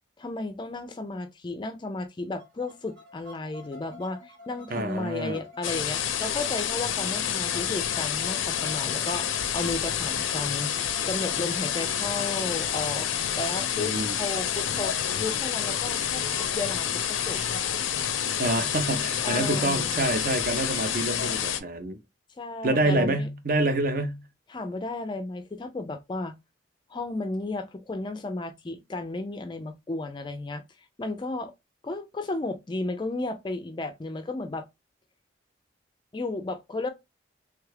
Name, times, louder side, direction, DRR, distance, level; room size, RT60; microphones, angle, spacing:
voice 1, 0.2-9.3 9.5-16.2 16.5-17.4 19.2-20.0 22.4-23.3 24.5-26.3 26.9-30.6 31.0-31.5 31.8-34.6 36.1-36.9, left 2 dB, 25° left, 0.3 m, -33 dB
sound 1, 2.4-20.1, left 1 dB, 70° right, 1.2 m, -48 dB
voice 2, 4.7-5.4 13.7-14.2 18.4-22.0 22.6-24.2, right 2 dB, 45° right, 0.6 m, -27 dB
sound 2, 5.6-21.6, left 9 dB, 90° left, 0.5 m, -28 dB
3.2 x 2.3 x 3.3 m
head